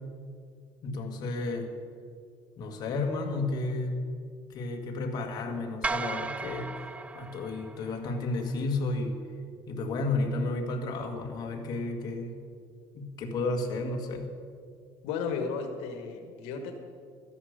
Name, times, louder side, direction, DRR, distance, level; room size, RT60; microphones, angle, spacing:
voice 1, 0.8-1.7 2.6-4.0 4.4-9.2 9.7-12.3 12.9-14.3, left 2 dB, 45° left, 2 dB, 1.8 m, -32 dB
sound 1, 5.8-8.2, right 4 dB, 15° right, 0.3 m, -35 dB
voice 2, 15.0-16.7, left 5 dB, 80° left, 5 dB, 1.5 m, -34 dB
13.0 x 10.5 x 6.6 m, 2.1 s
cardioid pair, 145°, 10 cm